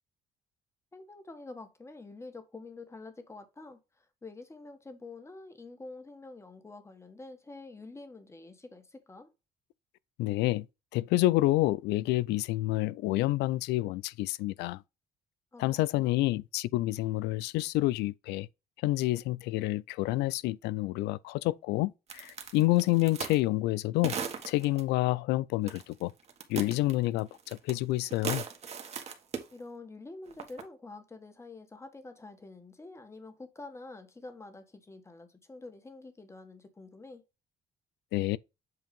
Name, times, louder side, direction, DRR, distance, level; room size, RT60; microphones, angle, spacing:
voice 1, 0.9-9.3 15.5-15.6 15.9-16.2 29.5-37.2, left 3 dB, 15° left, 1.4 m, -47 dB
voice 2, 10.2-10.7 10.9-14.8 15.6-18.5 18.8-24.2 24.5-26.1 26.5-28.4 38.1-38.4, left 17 dB, 85° left, 0.4 m, -28 dB
sound 1, 22.1-23.4 24.0-24.8 25.7-26.0 26.3-27.8 28.0-29.5 30.3-30.6, right 6 dB, 40° right, 1.4 m, -37 dB
7.9 x 2.7 x 5.2 m
cardioid pair, 110°, 17 cm